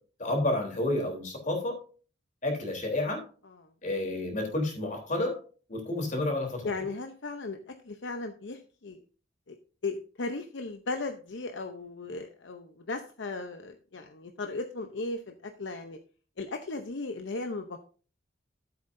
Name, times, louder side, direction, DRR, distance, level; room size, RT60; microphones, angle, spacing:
voice 1, 0.2-1.7 2.4-3.2 3.8-5.3 5.7-6.9, left 1 dB, 40° left, 1 dB, 3.5 m, -30 dB
voice 2, 6.6-7.6 7.9-9.0 9.5-9.6 9.8-16.0 16.4-17.8, left 3 dB, 70° left, 5 dB, 0.8 m, -36 dB
13.5 x 8.0 x 2.6 m, 0.39 s
head